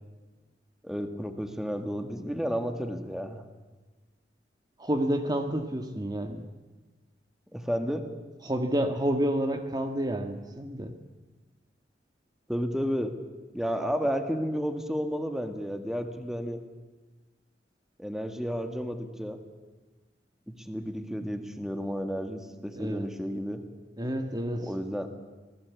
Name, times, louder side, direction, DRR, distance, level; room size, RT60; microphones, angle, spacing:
voice 1, 0.8-3.4 7.5-8.0 12.5-13.2 13.5-16.6 18.0-19.4 20.5-23.6 24.6-25.1, equal, 5° right, 6 dB, 1.8 m, -32 dB
voice 2, 4.8-6.4 8.4-10.9 22.7-23.1 24.0-24.7, right 1 dB, 25° right, 6 dB, 1.6 m, -29 dB
27.0 x 18.5 x 8.4 m, 1.2 s
head